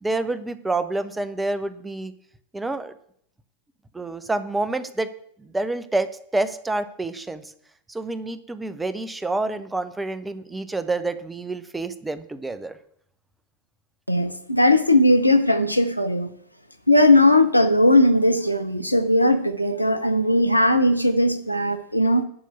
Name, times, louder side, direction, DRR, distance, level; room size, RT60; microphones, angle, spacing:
voice 1, 0.0-2.1 2.5-2.9 3.9-5.1 5.4-7.5 7.9-12.8, right 2 dB, 10° right, 13 dB, 0.8 m, -28 dB
voice 2, 14.1-16.3 16.9-22.2, left 1 dB, 90° left, 8 dB, 0.8 m, -18 dB
11.0 x 4.6 x 8.1 m, 0.67 s
figure-of-eight pair, 90°, 0 cm